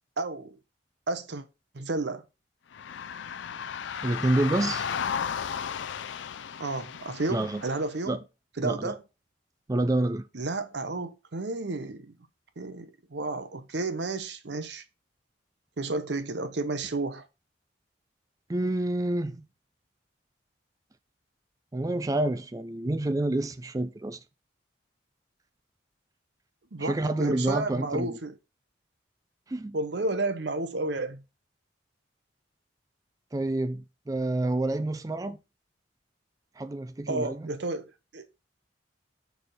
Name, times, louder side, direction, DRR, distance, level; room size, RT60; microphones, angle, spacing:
voice 1, 0.2-0.6 1.1-1.4 1.7-2.2 6.6-8.2 8.6-9.0 10.3-12.1 12.6-14.8 15.8-17.2 26.7-28.3 29.7-31.2 37.1-38.3, right 2 dB, 60° right, 0.7 m, -32 dB
sound 1, 2.7-7.9, left 7 dB, 70° left, 0.4 m, -34 dB
voice 2, 4.0-4.9 7.3-7.6 8.1-8.2 8.6-8.9 9.7-10.2 18.5-19.5 21.7-24.2 26.8-28.2 29.5-29.8 33.3-35.4 36.6-37.5, right 2 dB, 20° right, 0.4 m, -28 dB
6.5 x 3.4 x 5.7 m
head